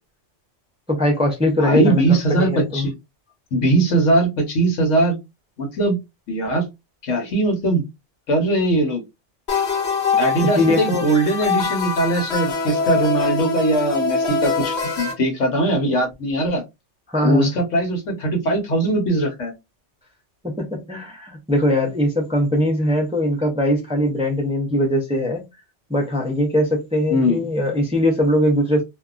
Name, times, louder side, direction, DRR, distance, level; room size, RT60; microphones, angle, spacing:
voice 1, 0.9-2.9 10.5-11.3 17.1-17.5 20.4-25.4 25.9-28.8, left 1 dB, 5° right, 0.5 m, -21 dB
voice 2, 1.6-2.9 3.5-5.2 5.6-6.0 6.3-6.7 7.0-7.8 8.3-9.0 10.2-16.6 17.2-19.5 24.7-24.8 27.1-27.4, right 1 dB, 85° left, 1.4 m, -20 dB
sound 1, 9.5-15.1, left 5 dB, 65° left, 1.1 m, -23 dB
2.7 x 2.3 x 2.4 m
omnidirectional pair, 1.2 m